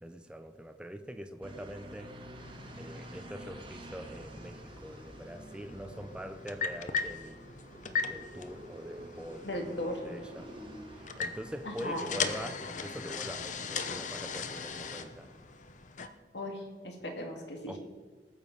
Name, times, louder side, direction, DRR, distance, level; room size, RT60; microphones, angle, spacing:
voice 1, 0.0-2.1 2.8-7.4 8.0-10.5 10.9-15.3 17.7-17.8, equal, 5° right, 7 dB, 0.6 m, -44 dB
sound 1, 1.4-15.4, right 1 dB, 30° right, 1.6 m, -50 dB
sound 2, 2.4-16.1, left 5 dB, 45° left, 0.8 m, -39 dB
voice 2, 9.4-10.2 11.6-12.1 16.3-17.7, left 1 dB, 80° left, 2 dB, 2.4 m, -37 dB
19.0 x 7.2 x 5.5 m, 1.4 s
head